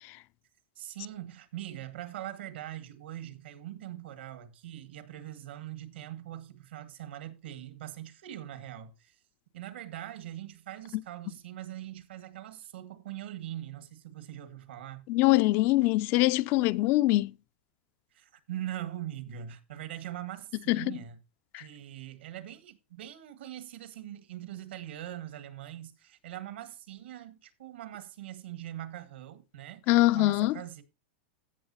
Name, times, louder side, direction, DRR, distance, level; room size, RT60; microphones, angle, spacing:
voice 1, 0.8-9.2 9.5-15.0 18.1-21.2 21.6-30.8, right 12 dB, 80° right, 1.9 m, -42 dB
voice 2, 15.1-17.3 20.7-21.0 21.5-21.6 29.9-30.6, left 18 dB, 40° left, 0.4 m, -23 dB
16.0 x 6.2 x 2.8 m
supercardioid pair, 140°, 6 cm